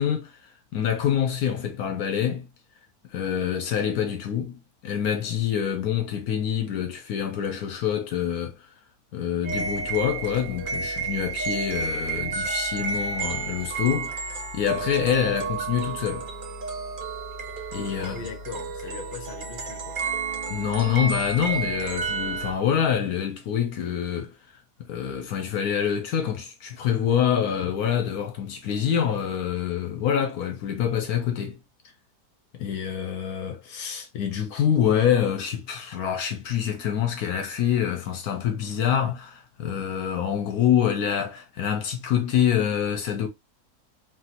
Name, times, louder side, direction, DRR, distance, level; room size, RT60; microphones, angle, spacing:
voice 1, 0.0-2.5 3.1-8.6 9.1-16.3 17.7-18.2 20.5-24.4 24.8-31.6 32.5-43.3, left 9 dB, 70° left, 1.1 m, -26 dB
sound 1, 9.4-22.5, right 4 dB, 75° right, 0.4 m, -31 dB
voice 2, 18.0-20.1, left 5 dB, 50° left, 0.9 m, -40 dB
3.1 x 2.7 x 2.5 m
omnidirectional pair, 1.7 m